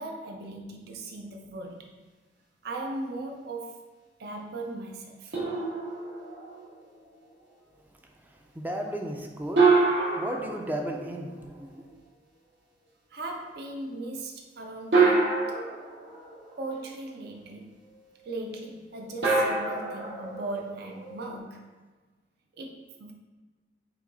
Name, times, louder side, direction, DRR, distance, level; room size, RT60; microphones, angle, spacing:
voice 1, 0.0-1.9 2.6-3.8 4.2-5.4 13.1-15.5 16.6-17.8 18.2-21.7 22.5-23.1, right 2 dB, 65° right, 2 dB, 0.5 m, -38 dB
sound 1, 5.3-6.8 9.6-11.6 13.2-13.3 14.9-16.8 19.2-21.3, right 3 dB, 80° right, 1.4 m, -26 dB
voice 2, 8.3-9.6 10.1-12.0, right 1 dB, 10° right, 2 dB, 0.4 m, -34 dB
5.6 x 2.3 x 3.9 m, 1.3 s
head